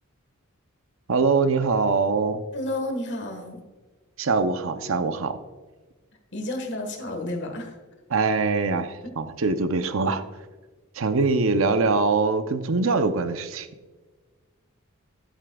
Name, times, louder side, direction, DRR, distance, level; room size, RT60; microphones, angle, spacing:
voice 1, 1.1-2.4 4.2-5.4 8.1-10.2 10.9-13.7, right 4 dB, 70° right, 10 dB, 0.6 m, -23 dB
voice 2, 2.5-3.6 6.3-7.8 11.2-11.3, left 1 dB, 55° left, 4 dB, 1.5 m, -31 dB
11.0 x 8.5 x 2.3 m, 1.3 s
head